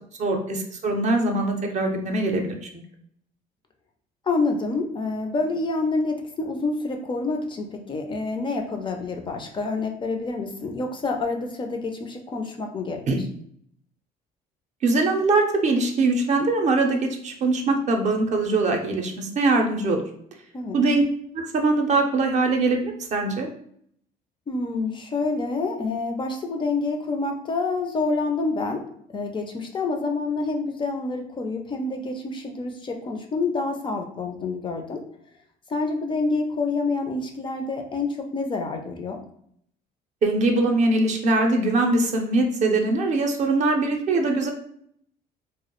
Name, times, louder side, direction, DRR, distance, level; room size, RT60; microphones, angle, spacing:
voice 1, 0.2-2.7 13.1-13.2 14.8-20.0 20.7-21.0 21.3-23.5 40.2-44.5, right 2 dB, 45° right, 3 dB, 0.5 m, -22 dB
voice 2, 4.3-13.0 20.5-20.9 24.5-28.8 29.1-35.0 35.7-39.2, left 3 dB, 30° left, 4 dB, 0.4 m, -27 dB
2.2 x 2.0 x 2.9 m, 0.67 s
cardioid pair, 110°, 17 cm